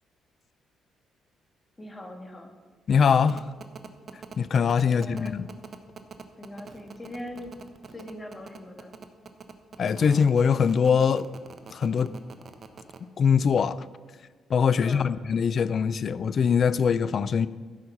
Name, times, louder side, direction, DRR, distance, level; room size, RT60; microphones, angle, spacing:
voice 1, 1.8-2.5 4.9-5.4 6.4-7.5 7.9-8.9 14.8-15.1, left 1 dB, 20° left, 3 dB, 1.8 m, -41 dB
voice 2, 2.9-3.5 4.4-5.5 9.8-11.3 11.7-12.1 13.2-13.8 14.5-17.5, left 6 dB, 50° left, 17 dB, 0.4 m, -22 dB
sound 1, 3.3-13.0, right 5 dB, 45° right, 1.0 m, -43 dB
14.0 x 5.7 x 6.6 m, 1.4 s
cardioid pair, 90°, 0 cm